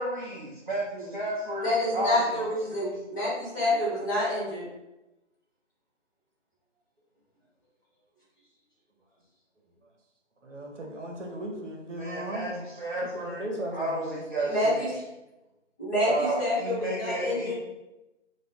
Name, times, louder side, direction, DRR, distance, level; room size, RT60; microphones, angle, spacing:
voice 1, 0.0-2.2 12.0-13.4 13.7-14.8 16.0-17.5, right 1 dB, 45° right, -5 dB, 0.5 m, -32 dB
voice 2, 1.6-4.6 14.5-14.9 15.8-17.5, left 1 dB, 15° left, -13 dB, 1.1 m, -27 dB
voice 3, 10.4-12.7 13.0-14.2, right 1 dB, 70° right, 0 dB, 0.9 m, -36 dB
4.4 x 2.3 x 2.3 m, 1.0 s
figure-of-eight pair, 170°, 37 cm